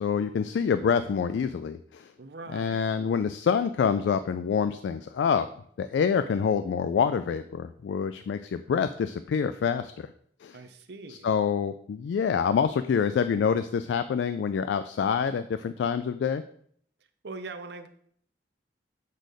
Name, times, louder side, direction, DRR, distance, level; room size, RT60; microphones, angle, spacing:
voice 1, 0.0-2.1 2.5-5.5 5.8-10.1 10.4-10.6 11.1-16.4, left 6 dB, 90° left, 11 dB, 0.3 m, -26 dB
voice 2, 2.2-2.8 10.5-11.3 17.2-17.9, right 3 dB, 70° right, 9 dB, 0.6 m, -41 dB
6.4 x 4.1 x 5.0 m, 0.63 s
head